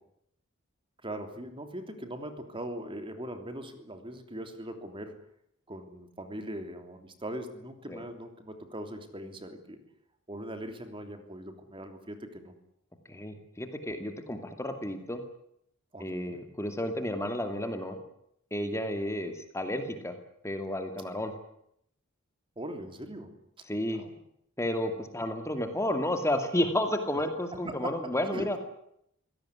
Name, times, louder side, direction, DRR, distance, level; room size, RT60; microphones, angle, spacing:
voice 1, 1.0-5.1 5.7-9.8 10.3-12.5 15.9-16.4 21.2-21.3 22.6-23.4 23.9-24.1 27.5-27.9 28.3-28.6, right 1 dB, 25° right, 7 dB, 3.2 m, -40 dB
voice 2, 13.1-15.2 16.0-18.0 18.5-20.1 20.4-21.3 23.7-24.0 24.6-28.6, left 1 dB, 15° left, 6 dB, 2.4 m, -31 dB
25.5 x 17.5 x 9.9 m, 0.75 s
head